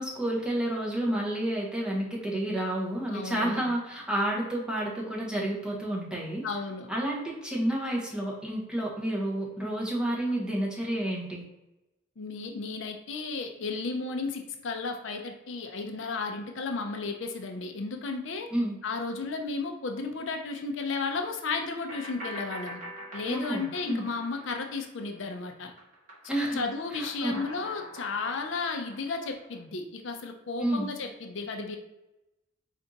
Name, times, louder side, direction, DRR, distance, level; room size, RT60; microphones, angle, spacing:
voice 1, 0.0-6.4 6.9-11.4 18.5-18.8 23.3-24.0 26.3-26.6 26.9-27.4 30.6-30.9, right 1 dB, 5° right, -4 dB, 0.8 m, -30 dB
voice 2, 3.1-3.6 6.4-6.9 12.2-18.5 18.8-22.8 23.1-25.7 26.2-31.8, left 4 dB, 60° left, 4 dB, 0.5 m, -34 dB
sound 1, 21.9-25.3 25.6-29.6, equal, 40° right, 1.2 m, -44 dB
4.4 x 2.5 x 3.9 m, 0.95 s
head